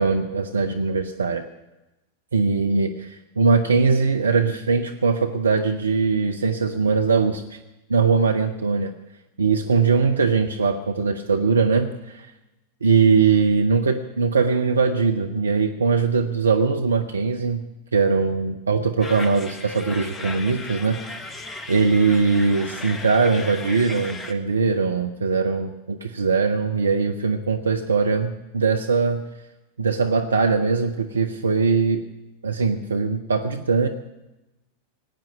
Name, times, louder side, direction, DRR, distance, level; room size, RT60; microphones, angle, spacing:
voice 1, 0.0-1.4 2.3-7.6 7.9-8.9 9.4-12.3 12.8-17.6 17.9-21.0 21.7-29.2 29.8-32.0 32.4-33.9, right 4 dB, 75° right, 6 dB, 0.8 m, -21 dB
sound 1, 19.0-24.3, left 2 dB, 20° left, 1.2 m, -36 dB
18.0 x 9.0 x 8.6 m, 1.0 s
figure-of-eight pair, 90°, 0 cm